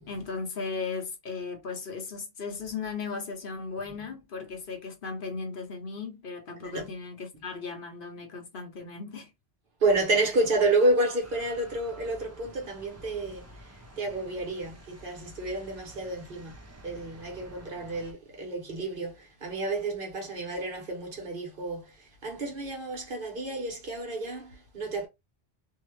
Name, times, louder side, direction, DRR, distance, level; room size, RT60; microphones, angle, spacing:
voice 1, 0.1-9.3, left 4 dB, 60° left, 0.9 m, -36 dB
voice 2, 9.8-16.6 16.8-25.1, right 2 dB, 60° right, 1.1 m, -30 dB
sound 1, 11.2-18.1, equal, 20° right, 0.4 m, -50 dB
2.7 x 2.3 x 3.1 m
omnidirectional pair, 1.1 m